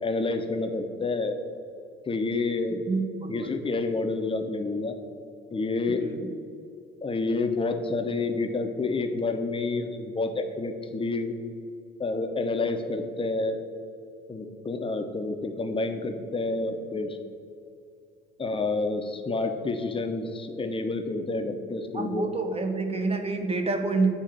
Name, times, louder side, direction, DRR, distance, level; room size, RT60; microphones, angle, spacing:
voice 1, 0.0-1.4 2.1-2.8 3.3-4.9 5.5-6.0 7.0-11.3 12.0-13.6 14.3-17.2 18.4-22.3, left 3 dB, 15° left, 6 dB, 0.7 m, -29 dB
voice 2, 2.9-3.7 5.9-6.3 21.9-24.1, right 3 dB, 20° right, 6 dB, 0.8 m, -28 dB
8.2 x 2.8 x 6.1 m, 2.4 s
figure-of-eight pair, 55°, 31 cm